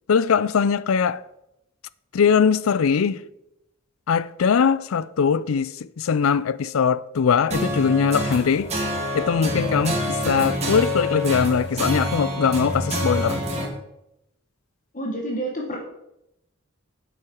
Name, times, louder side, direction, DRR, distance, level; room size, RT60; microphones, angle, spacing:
voice 1, 0.1-1.2 2.1-3.2 4.1-8.7 9.1-13.4, left 6 dB, 80° left, 0.4 m, -21 dB
sound 1, 7.5-13.7, equal, 35° right, 2.6 m, -26 dB
voice 2, 14.9-15.8, right 1 dB, 40° left, 1.5 m, -28 dB
9.3 x 7.9 x 4.6 m
head